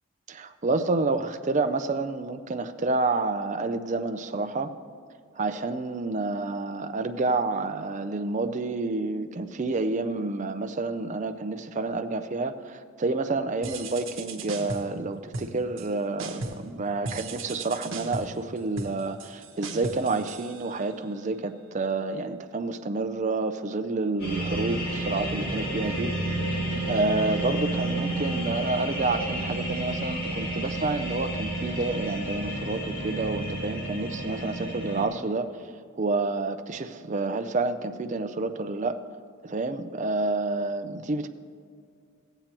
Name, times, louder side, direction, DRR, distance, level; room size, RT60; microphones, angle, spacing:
voice 1, 0.3-4.7 5.4-26.2 26.9-35.7 36.0-39.0 39.4-41.3, right 3 dB, 35° right, 10 dB, 0.4 m, -29 dB
sound 1, 13.6-15.0 15.3-15.9 16.2-16.7 17.0-21.1, right 3 dB, 65° right, 1.0 m, -37 dB
sound 2, 24.2-35.0, right 1 dB, 50° left, 2.8 m, -31 dB
15.0 x 8.9 x 3.0 m, 2.2 s
head